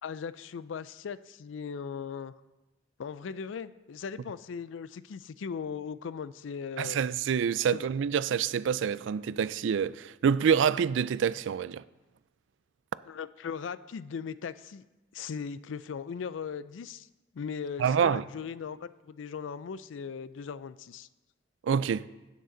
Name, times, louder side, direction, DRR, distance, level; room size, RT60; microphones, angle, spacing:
voice 1, 0.0-2.3 3.0-7.0 7.7-7.9 13.1-14.8 15.1-17.1 17.3-21.1, left 6 dB, 85° left, 0.4 m, -38 dB
voice 2, 6.8-11.8 17.8-18.2 21.6-22.0, right 7 dB, 75° right, 0.3 m, -27 dB
16.0 x 6.6 x 3.9 m
head